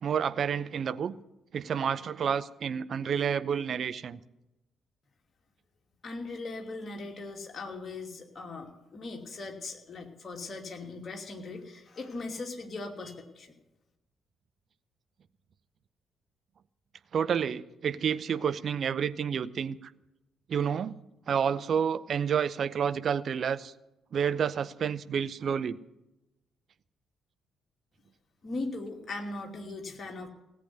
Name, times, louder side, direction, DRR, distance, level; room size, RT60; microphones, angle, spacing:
voice 1, 0.0-1.2 1.5-4.2 17.1-19.9 20.5-21.0 21.3-23.7 24.1-25.8, right 7 dB, 45° right, 0.6 m, -29 dB
voice 2, 6.0-13.5 28.4-30.3, left 3 dB, 35° left, 2.7 m, -39 dB
17.5 x 8.2 x 9.5 m
figure-of-eight pair, 45°, 0 cm